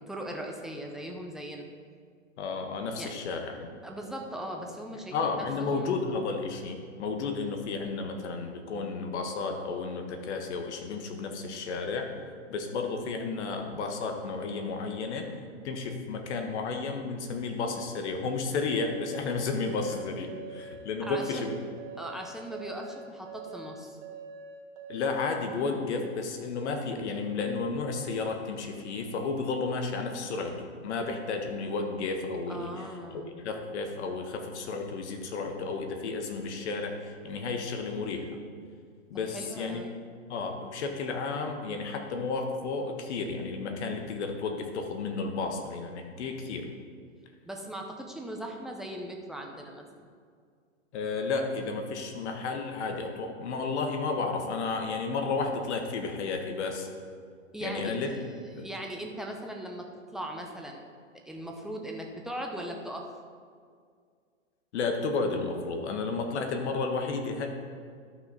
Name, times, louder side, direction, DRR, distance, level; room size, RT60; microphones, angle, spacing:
voice 1, 0.0-1.7 2.9-3.1 3.8-6.0 21.0-21.6 22.0-24.0 32.5-33.4 39.1-39.9 47.4-50.1 57.5-58.0 58.6-60.8 61.3-63.0, right 1 dB, ahead, 1 dB, 0.7 m, -39 dB
voice 2, 2.4-3.7 5.1-12.1 12.5-15.3 15.6-21.5 24.9-32.8 33.1-38.3 39.1-39.8 40.3-46.7 50.9-56.9 57.6-58.6 64.7-67.5, left 4 dB, 60° left, 4 dB, 1.5 m, -32 dB
sound 1, 18.8-25.3, right 4 dB, 65° right, 1.7 m, -44 dB
12.5 x 5.9 x 4.1 m, 2.1 s
hypercardioid pair, 110°, 39 cm